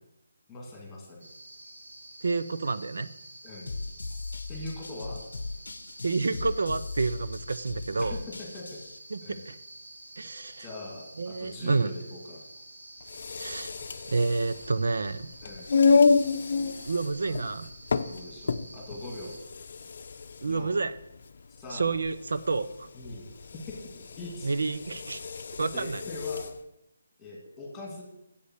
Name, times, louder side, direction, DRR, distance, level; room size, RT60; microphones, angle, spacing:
voice 1, 0.5-1.3 3.4-3.7 4.5-5.2 8.0-8.6 9.2-9.4 10.6-12.4 15.4-15.7 17.2-17.4 18.1-19.3 20.5-20.8 21.6-21.9 22.9-23.2 23.7-24.5 25.7-26.4 27.2-28.0, left 2 dB, 5° left, -1 dB, 2.2 m, -41 dB
sound 1, 1.2-19.4, right 1 dB, 85° right, 4.3 m, -49 dB
voice 2, 2.2-3.1 6.0-8.2 9.1-9.6 10.2-10.7 11.2-11.9 13.3-13.7 14.1-15.3 16.8-17.7 20.4-20.9 21.7-22.9 24.4-25.2 25.6-26.0, right 3 dB, 70° right, 13 dB, 0.6 m, -29 dB
sound 2, 3.7-9.0, left 3 dB, 80° left, 0.7 m, -38 dB
sound 3, 13.0-26.6, left 4 dB, 40° left, 0.6 m, -29 dB
8.5 x 8.0 x 7.9 m, 0.85 s
hypercardioid pair, 175°, 0 cm